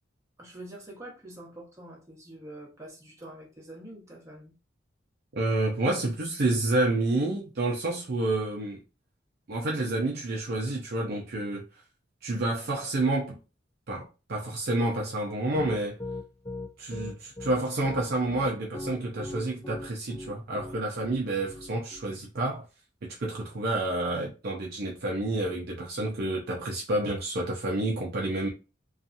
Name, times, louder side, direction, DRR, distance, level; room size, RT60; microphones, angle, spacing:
voice 1, 0.4-4.5, right 1 dB, 15° right, 0.9 m, -45 dB
voice 2, 5.3-8.8 9.5-11.6 12.2-13.4 13.9-16.0 16.8-22.7 23.2-28.5, right 2 dB, 55° right, 0.5 m, -29 dB
Piano, 15.5-22.0, left 2 dB, 15° left, 0.4 m, -38 dB
2.7 x 2.3 x 2.5 m
head